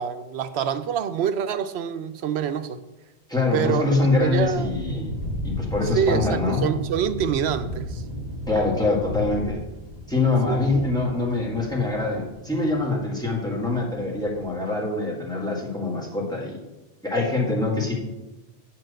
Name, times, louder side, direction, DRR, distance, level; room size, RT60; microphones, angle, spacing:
voice 1, 0.0-2.8 3.5-4.7 5.9-8.0 10.5-10.6, right 8 dB, 70° right, 0.8 m, -26 dB
voice 2, 3.3-5.1 5.4-6.7 8.5-9.6 10.1-16.6 17.0-17.9, left 3 dB, 5° left, 1.8 m, -24 dB
sound 1, 3.6-14.5, left 1 dB, 20° right, 1.6 m, -34 dB
8.4 x 4.4 x 6.4 m
omnidirectional pair, 1.1 m